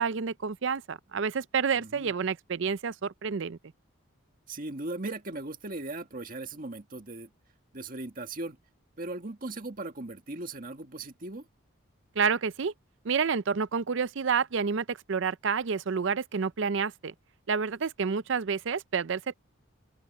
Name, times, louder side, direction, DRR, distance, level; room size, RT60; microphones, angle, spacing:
voice 1, 0.0-3.6 12.2-12.7 13.0-17.1 17.5-19.3, right 6 dB, 60° right, 0.5 m, -29 dB
voice 2, 1.8-2.1 4.5-7.3 7.7-8.6 9.0-11.5, right 2 dB, 40° right, 1.9 m, -38 dB
open air
head